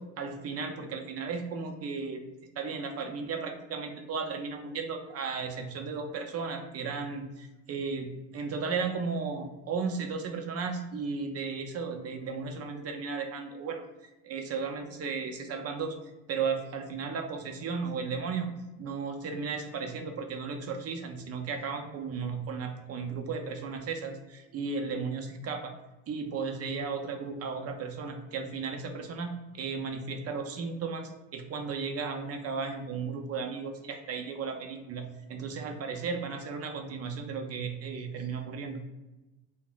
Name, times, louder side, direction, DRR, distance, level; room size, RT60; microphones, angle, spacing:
voice 1, 0.0-2.2 2.6-13.8 14.2-16.0 16.3-18.5 18.8-25.7 26.1-38.8, right 5 dB, 40° right, 5 dB, 0.5 m, -35 dB
2.1 x 2.0 x 3.7 m, 1.0 s
supercardioid pair, 80°, 39 cm